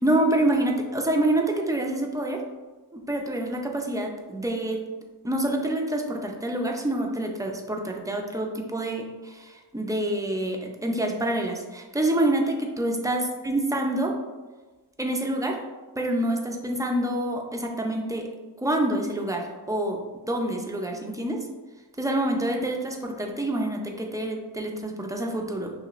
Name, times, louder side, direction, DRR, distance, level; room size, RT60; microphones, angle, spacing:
voice 1, 0.0-2.4 2.9-4.8 5.2-14.1 15.0-15.6 16.0-18.2 18.6-20.0 20.3-21.4 22.0-25.7, right 1 dB, 10° right, 1 dB, 0.5 m, -27 dB
6.1 x 2.8 x 2.5 m, 1.2 s
wide cardioid pair, 115°, 40 cm